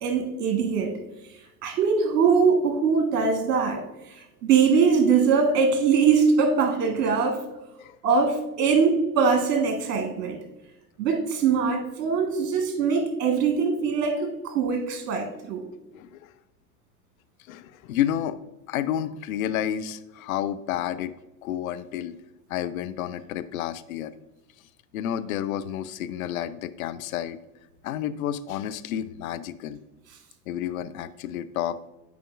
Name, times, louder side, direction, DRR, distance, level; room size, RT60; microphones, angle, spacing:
voice 1, 0.0-0.9 1.6-3.8 4.1-7.4 8.0-10.4 11.0-15.6, right 5 dB, 55° right, 3 dB, 1.4 m, -22 dB
voice 2, 17.5-18.4 18.7-21.1 21.4-22.2 22.5-24.1 24.9-27.4 27.8-29.8 30.5-31.8, left 10 dB, 60° left, 13 dB, 0.5 m, -30 dB
9.2 x 5.0 x 2.4 m, 0.97 s
figure-of-eight pair, 85°, 47 cm